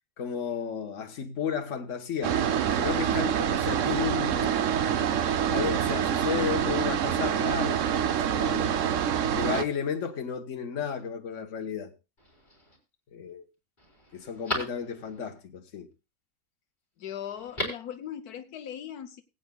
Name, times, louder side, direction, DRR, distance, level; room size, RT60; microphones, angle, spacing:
voice 1, 0.2-2.4 2.7-4.6 5.5-7.8 8.3-8.9 9.4-11.9 13.1-13.4 14.1-15.9, left 7 dB, 55° left, 1.5 m, -33 dB
sound 1, 2.2-9.6, right 8 dB, 65° right, 1.0 m, -26 dB
Telephone, 12.2-12.8 13.3-13.4 13.8-15.3 17.3-18.0 18.2-18.3, left 1 dB, 30° left, 4.3 m, -36 dB
voice 2, 17.0-19.2, left 9 dB, 85° left, 1.4 m, -39 dB
20.0 x 8.9 x 2.3 m
omnidirectional pair, 1.6 m